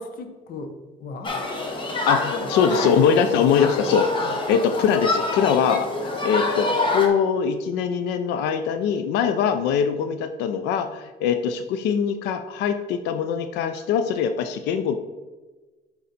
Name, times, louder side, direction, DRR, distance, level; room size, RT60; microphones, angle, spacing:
voice 1, 0.0-1.4 2.3-2.9 3.8-4.0, left 2 dB, 55° left, 7 dB, 1.0 m, -35 dB
Human group actions, 1.2-7.1, left 2 dB, 30° left, 1.1 m, -26 dB
voice 2, 2.1-5.9 6.2-15.0, left 7 dB, 85° left, 8 dB, 0.5 m, -22 dB
6.5 x 4.0 x 4.1 m, 1.2 s
cardioid pair, 110°, 17 cm